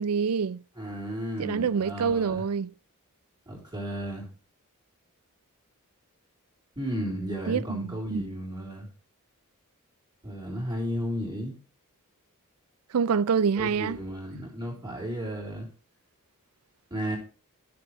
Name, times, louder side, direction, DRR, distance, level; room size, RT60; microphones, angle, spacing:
voice 1, 0.0-0.6 1.4-2.7 7.5-8.2 12.9-14.0, right 6 dB, 80° right, 0.4 m, -26 dB
voice 2, 0.7-2.5 3.5-4.3 6.8-8.9 10.2-11.6 13.6-15.7 16.9-17.2, equal, 20° right, 3.7 m, -34 dB
14.0 x 6.9 x 3.3 m
head